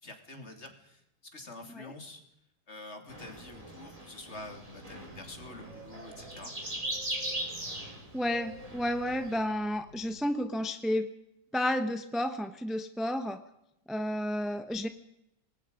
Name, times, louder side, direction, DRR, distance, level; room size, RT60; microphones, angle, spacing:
voice 1, 0.0-2.2 2.7-6.5, left 2 dB, 35° left, 5 dB, 3.2 m, -47 dB
sound 1, 3.1-9.4, right 1 dB, 15° right, 4.0 m, -40 dB
sound 2, 4.3-10.3, equal, 60° right, 3.4 m, -56 dB
voice 2, 8.1-11.1 11.5-13.4 13.9-14.9, left 1 dB, ahead, 9 dB, 0.6 m, -31 dB
27.0 x 20.0 x 5.2 m, 0.82 s
omnidirectional pair, 2.1 m